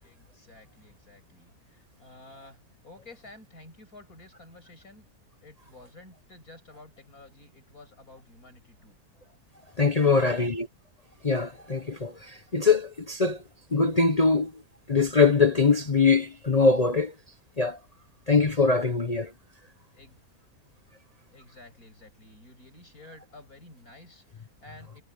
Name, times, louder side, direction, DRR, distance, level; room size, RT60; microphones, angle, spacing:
voice 1, 0.0-5.1 5.4-9.0 10.0-10.4 19.9-20.2 21.3-25.0, left 2 dB, 70° left, 8.6 m, -51 dB
voice 2, 9.8-10.7 11.2-13.4 13.7-14.5 14.9-17.1 17.6-17.8 18.3-19.3, left 4 dB, 30° left, 1.0 m, -22 dB
omnidirectional pair, 1.6 m